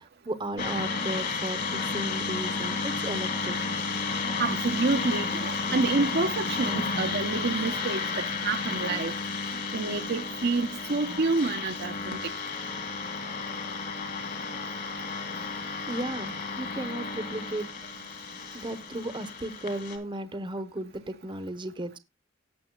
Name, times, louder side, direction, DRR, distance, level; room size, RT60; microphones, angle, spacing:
voice 1, 0.0-3.5 15.9-17.7 18.5-22.0, right 1 dB, 25° right, 0.9 m, -35 dB
sound 1, 0.6-20.0, left 4 dB, 50° left, 2.8 m, -32 dB
voice 2, 4.4-9.1 9.7-12.2, right 3 dB, 55° right, 0.8 m, -28 dB
18.0 x 6.8 x 2.3 m
head